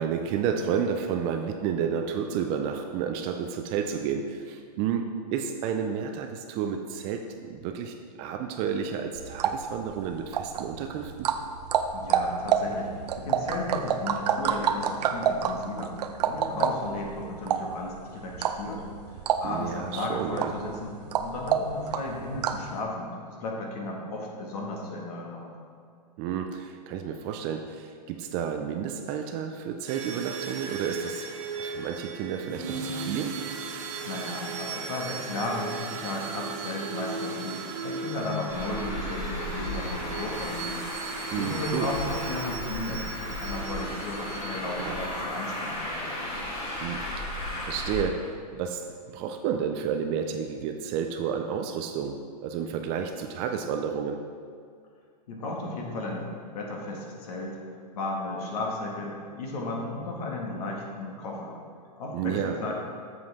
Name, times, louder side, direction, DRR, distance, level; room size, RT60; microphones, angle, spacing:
voice 1, 0.0-11.3 19.4-20.5 26.2-31.3 31.6-33.4 41.3-42.2 44.8-45.3 46.8-54.3 62.1-62.7, right 7 dB, 25° right, 5 dB, 0.3 m, -31 dB
sound 1, 9.2-22.7, right 8 dB, 70° right, 0.6 m, -29 dB
voice 2, 11.9-15.9 16.2-18.8 19.4-20.9 21.2-23.1 23.4-25.6 34.1-35.8 36.0-40.8 41.4-46.1 55.3-57.6 57.9-61.5 62.0-62.7, left 2 dB, 60° left, -1 dB, 1.9 m, -34 dB
sound 2, 29.9-45.5, right 4 dB, 50° right, 0.9 m, -37 dB
Traffic noise roadway noise, 38.5-48.0, left 1 dB, 25° left, 1.9 m, -35 dB
7.6 x 7.4 x 3.5 m, 2.2 s
hypercardioid pair, 145°, 21 cm